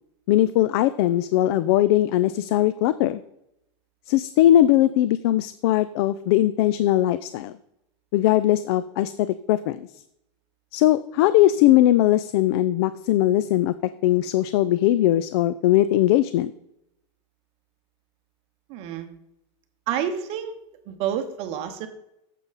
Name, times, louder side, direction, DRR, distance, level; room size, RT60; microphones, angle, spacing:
voice 1, 0.3-3.2 4.1-7.5 8.1-9.8 10.7-13.7 14.0-16.5, left 13 dB, 55° left, 15 dB, 0.4 m, -20 dB
voice 2, 18.7-19.1 19.9-20.6 20.9-21.9, right 9 dB, 40° right, 7 dB, 0.8 m, -28 dB
9.1 x 7.4 x 4.0 m, 0.83 s
supercardioid pair, 160°, 16 cm